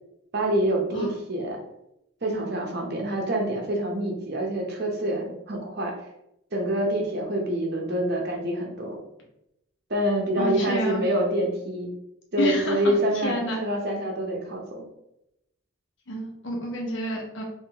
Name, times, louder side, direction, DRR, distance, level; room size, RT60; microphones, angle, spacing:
voice 1, 0.3-1.6 2.2-6.0 6.5-9.0 9.9-11.9 12.3-14.9, right 1 dB, 50° right, 0 dB, 0.8 m, -26 dB
voice 2, 10.4-11.0 12.4-12.9 13.2-13.6 16.1-17.4, left 1 dB, 65° left, -1 dB, 1.0 m, -29 dB
3.5 x 2.6 x 3.4 m, 0.83 s
head